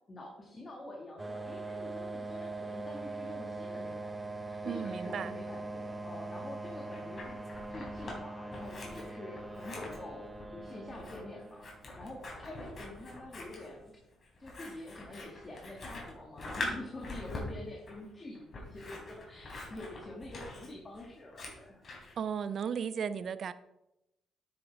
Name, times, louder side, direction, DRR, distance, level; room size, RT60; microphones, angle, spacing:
voice 1, 0.1-7.4 7.7-14.0 14.4-21.8, left 1 dB, 30° left, -1 dB, 2.0 m, -47 dB
sound 1, 1.2-12.6, right 2 dB, 20° right, 0.9 m, -42 dB
voice 2, 4.6-5.3 22.2-23.5, right 7 dB, 55° right, 14 dB, 0.5 m, -35 dB
Scissors, 6.6-8.2 8.5-22.1, left 2 dB, 45° left, 3.8 m, -44 dB
9.4 x 8.7 x 3.5 m, 0.91 s
cardioid pair, 90°, 0 cm